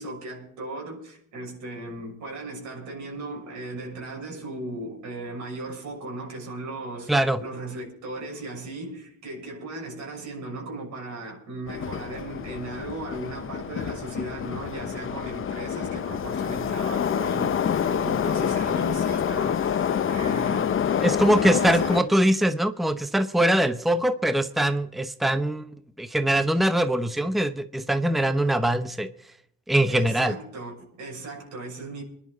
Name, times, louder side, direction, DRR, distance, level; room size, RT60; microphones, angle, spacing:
voice 1, 0.0-22.2 29.9-32.0, right 2 dB, 75° right, 6.5 m, -37 dB
voice 2, 7.1-7.4 21.0-25.7 26.0-29.1 29.7-30.4, right 1 dB, ahead, 0.8 m, -22 dB
Subway metro underground, 11.7-22.0, left 8 dB, 45° left, 0.7 m, -27 dB
24.0 x 11.0 x 4.0 m
cardioid pair, 90°, 30 cm